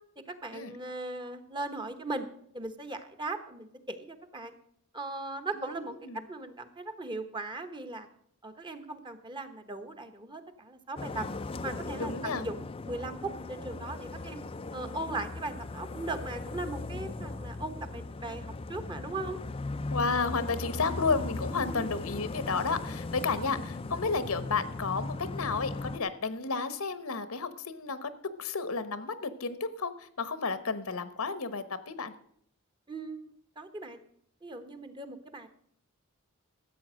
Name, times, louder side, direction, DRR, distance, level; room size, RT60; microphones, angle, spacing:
voice 1, 0.2-2.3 2.5-4.5 4.9-6.0 6.3-8.1 8.4-11.3 11.6-14.4 14.7-19.4 21.7-21.9 23.3-23.5 32.9-34.0 34.4-35.5, right 2 dB, 20° right, 8 dB, 1.0 m, -38 dB
voice 2, 5.6-6.2 12.0-12.5 19.9-28.1 28.4-32.1, left 4 dB, 70° left, 13 dB, 1.0 m, -32 dB
sound 1, 11.0-26.0, left 2 dB, 25° left, 0.4 m, -38 dB
13.5 x 8.4 x 6.2 m, 0.68 s
head